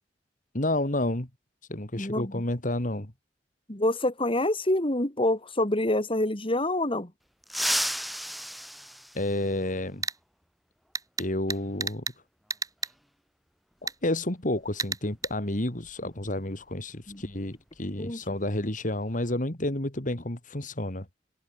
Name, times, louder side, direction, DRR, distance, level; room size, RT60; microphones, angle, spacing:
voice 1, 0.5-1.3 1.7-3.1 9.1-10.0 11.2-12.0 13.8-21.1, left 1 dB, 50° left, 3.0 m, -30 dB
voice 2, 1.9-2.4 3.7-7.1 17.1-17.2 18.0-18.2, left 1 dB, 30° left, 3.4 m, -27 dB
sound 1, 7.4-9.9 11.5-11.6 12.8-12.9 14.6-14.7 15.1-15.3 15.8-17.9 18.2-18.5 18.9-19.3, equal, ahead, 6.0 m, -34 dB
sound 2, 10.0-10.2 10.9-12.2 12.5-12.9 13.9-14.0 14.8-15.3, right 4 dB, 20° right, 2.5 m, -32 dB
open air
head